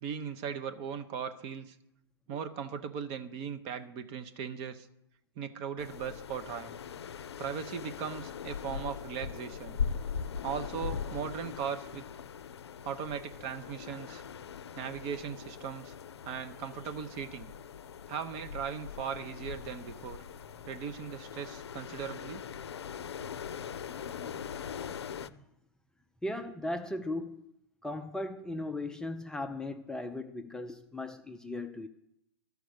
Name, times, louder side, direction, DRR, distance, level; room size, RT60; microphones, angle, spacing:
voice 1, 0.0-1.7 2.3-4.9 5.4-6.8 7.4-9.8 10.4-12.1 12.8-14.2 14.8-15.9 16.2-17.5 18.1-20.2 20.7-22.4, right 7 dB, 40° right, 9 dB, 0.8 m, -38 dB
sound 1, 5.8-25.3, left 7 dB, 80° left, 0.5 m, -41 dB
voice 2, 26.2-27.4 27.8-31.9, left 1 dB, 5° left, 4 dB, 0.4 m, -38 dB
12.5 x 4.8 x 6.5 m, 0.82 s
hypercardioid pair, 115°, 14 cm